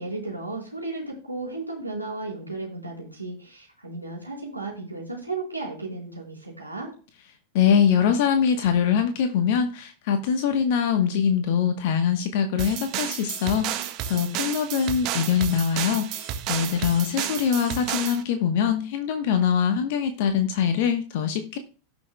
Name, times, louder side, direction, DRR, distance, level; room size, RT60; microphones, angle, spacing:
voice 1, 0.0-6.9, right 3 dB, 85° right, -2 dB, 3.9 m, -34 dB
voice 2, 7.5-21.6, left 7 dB, 50° left, 8 dB, 1.0 m, -23 dB
sound 1, 12.6-18.2, right 11 dB, 40° right, 1.3 m, -31 dB
18.0 x 6.2 x 2.2 m, 0.37 s
figure-of-eight pair, 90°, 0 cm